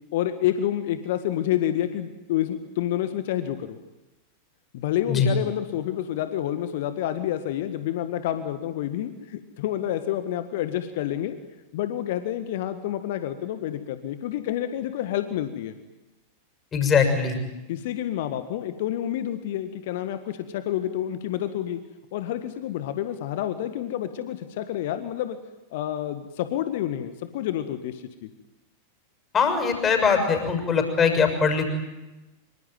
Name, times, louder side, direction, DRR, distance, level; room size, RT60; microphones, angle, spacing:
voice 1, 0.1-3.8 4.7-11.4 11.7-15.8 17.7-21.8 22.1-25.4 25.7-28.3, left 11 dB, 50° left, 10 dB, 1.7 m, -28 dB
voice 2, 16.7-17.4 29.3-31.7, left 5 dB, 25° left, 5 dB, 6.5 m, -21 dB
25.5 x 24.5 x 9.3 m, 1.0 s
figure-of-eight pair, 90°, 0 cm